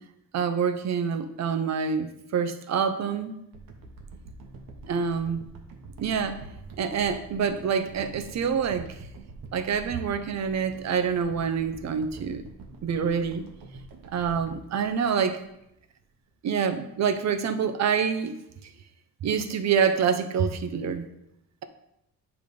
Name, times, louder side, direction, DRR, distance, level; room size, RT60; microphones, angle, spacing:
voice 1, 0.3-3.4 4.9-5.4 6.0-6.4 6.8-9.0 9.5-12.4 12.8-13.5 14.1-15.4 16.4-18.4 19.2-21.1, right 6 dB, 50° right, 9 dB, 0.7 m, -26 dB
sound 1, 3.5-15.8 16.3-16.4, right 3 dB, 70° right, 1.2 m, -46 dB
9.9 x 3.4 x 5.2 m, 0.82 s
cardioid pair, 170°, 35 cm